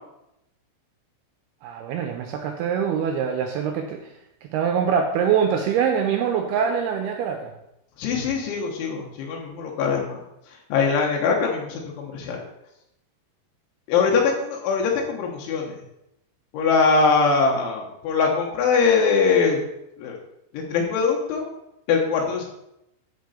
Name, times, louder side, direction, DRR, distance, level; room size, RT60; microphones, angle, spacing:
voice 1, 1.6-4.1 4.4-7.5, right 7 dB, 85° right, 4 dB, 2.3 m, -24 dB
voice 2, 8.0-10.2 10.7-12.4 13.9-15.8 16.5-19.6 20.0-20.2 20.5-21.5 21.9-22.4, left 5 dB, 85° left, -1 dB, 3.8 m, -22 dB
13.0 x 5.2 x 4.3 m, 0.84 s
omnidirectional pair, 5.3 m